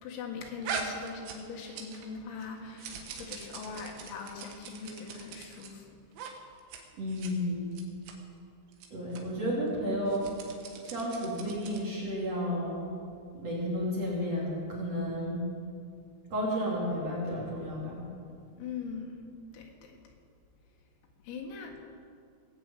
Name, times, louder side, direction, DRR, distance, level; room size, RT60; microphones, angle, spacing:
voice 1, 0.0-6.0 18.6-19.2 19.5-20.0 21.2-21.8, left 5 dB, 80° left, 1 dB, 4.4 m, -41 dB
sound 1, 0.6-2.1 2.4-5.7 6.1-6.3 6.6-6.8 7.1-7.3 7.7-8.1 8.7-8.9 9.1-9.2 10.0-11.9, right 5 dB, 70° right, 3.6 m, -41 dB
voice 2, 6.9-7.7 8.9-10.3 10.8-12.8 13.3-15.4 16.3-18.0, equal, 40° right, -6 dB, 3.1 m, -32 dB
19.5 x 7.5 x 8.4 m, 2.3 s
omnidirectional pair, 6.0 m